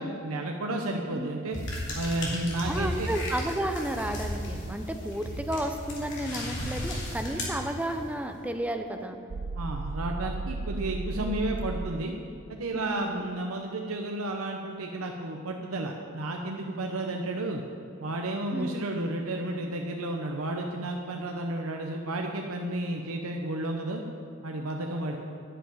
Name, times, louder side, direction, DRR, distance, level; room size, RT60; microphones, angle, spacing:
voice 1, 0.0-1.6 1.9-3.1 9.5-12.1 12.5-17.6 18.0-24.0 24.4-25.2, right 1 dB, 85° right, 2 dB, 0.8 m, -32 dB
sound 1, 1.5-8.2, left 1 dB, 55° left, 2.9 m, -35 dB
voice 2, 2.7-9.2 11.1-11.7 12.7-13.3 18.5-19.0, right 1 dB, 5° right, 6 dB, 0.6 m, -33 dB
sound 2, 9.3-11.9, right 3 dB, 50° right, 0.4 m, -34 dB
10.0 x 6.8 x 9.1 m, 2.7 s
head